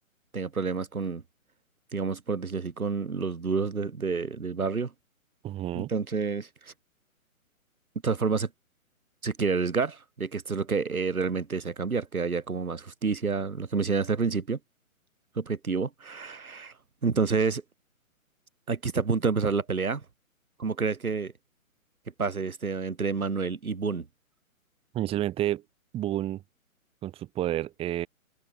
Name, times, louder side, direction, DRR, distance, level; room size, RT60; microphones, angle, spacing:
voice 1, 0.3-1.2 1.9-4.9 5.7-6.7 8.0-8.5 9.2-14.6 15.4-16.7 17.0-17.6 18.7-20.0 20.6-21.3 22.2-24.1, right 5 dB, 85° right, 7.3 m, -29 dB
voice 2, 5.4-5.9 24.9-25.6 25.9-26.4 27.0-28.1, right 13 dB, 15° right, 6.7 m, -30 dB
open air
hypercardioid pair, 160°, 42 cm